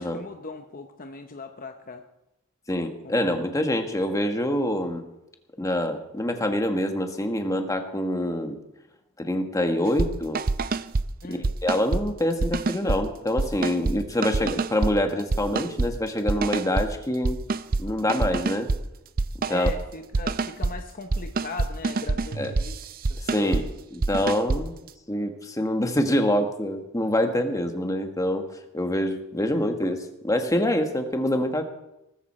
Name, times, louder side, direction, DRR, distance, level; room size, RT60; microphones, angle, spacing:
voice 1, 0.0-2.0 3.0-3.2 11.2-11.5 19.5-22.8 23.1-23.7, left 3 dB, 40° left, 6 dB, 0.9 m, -39 dB
voice 2, 2.7-5.0 5.6-8.6 9.2-10.4 11.3-17.4 17.8-18.7 19.5-19.7 22.4-22.5 23.3-23.6 23.9-24.7 25.1-28.5 28.7-31.6, left 1 dB, 15° left, 5 dB, 1.4 m, -25 dB
sound 1, 9.9-10.1 10.4-11.1 11.4-12.0 12.4-13.0 13.4-14.0 14.2-14.9 15.3-15.9 16.3-16.9 17.2-17.8 18.1-18.8 19.2-19.8 20.1-20.7 21.1-23.6 24.0-24.6, right 3 dB, 45° right, 0.5 m, -25 dB
19.0 x 14.0 x 4.3 m, 0.88 s
head